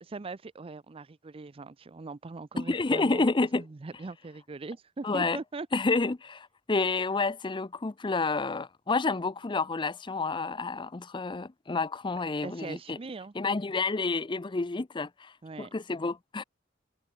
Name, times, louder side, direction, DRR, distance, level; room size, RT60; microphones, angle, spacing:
voice 1, 0.0-3.3 3.5-5.7 12.1-13.3 15.4-15.7, right 3 dB, 30° right, 0.5 m, -41 dB
voice 2, 2.6-3.6 5.0-5.4 5.7-13.0 13.4-15.3 15.6-16.4, left 3 dB, 25° left, 0.6 m, -29 dB
head